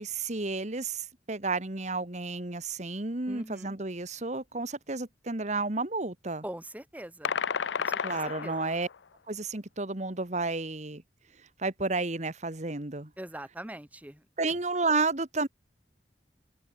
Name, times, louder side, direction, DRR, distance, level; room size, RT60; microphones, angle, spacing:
voice 1, 0.0-6.4 8.0-8.9 9.3-11.0 11.6-13.1 14.4-15.5, right 3 dB, 40° right, 1.6 m, -31 dB
voice 2, 3.3-3.8 6.4-7.4 7.8-8.7 13.2-14.2, right 1 dB, 10° right, 1.4 m, -42 dB
sound 1, 7.2-9.0, left 7 dB, 85° left, 0.6 m, -32 dB
open air
head